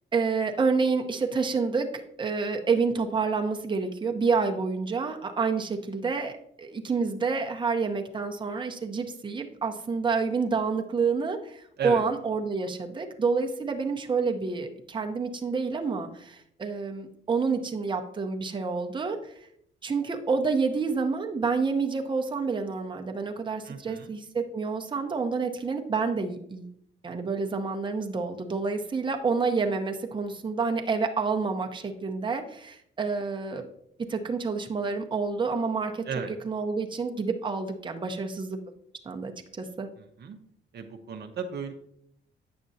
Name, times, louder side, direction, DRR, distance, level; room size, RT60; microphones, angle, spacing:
voice 1, 0.1-1.9 2.2-19.3 19.8-26.7 27.0-33.7 34.1-36.0 36.4-38.6 39.0-39.9, right 4 dB, 25° right, 4 dB, 0.8 m, -28 dB
voice 2, 23.6-24.1 36.1-36.3 40.0-40.4 40.7-41.7, right 5 dB, 55° right, 4 dB, 0.7 m, -35 dB
8.6 x 6.1 x 2.7 m, 0.71 s
cardioid pair, 90°, 20 cm